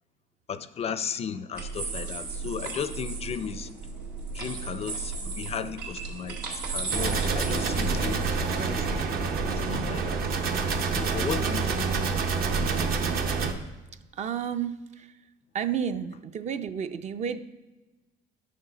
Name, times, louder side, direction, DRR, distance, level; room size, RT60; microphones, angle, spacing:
voice 1, 0.5-3.7 4.3-8.9 9.5-10.2 10.9-12.0, left 7 dB, 40° left, 12 dB, 0.4 m, -35 dB
sound 1, 1.5-8.6, right 4 dB, 85° right, 2.1 m, -35 dB
sound 2, 6.9-13.5, right 4 dB, 60° right, 0.9 m, -27 dB
voice 2, 14.1-15.1 15.5-17.4, right 8 dB, 45° right, 10 dB, 0.5 m, -31 dB
10.0 x 6.5 x 4.0 m, 1.1 s
cardioid pair, 110°, 17 cm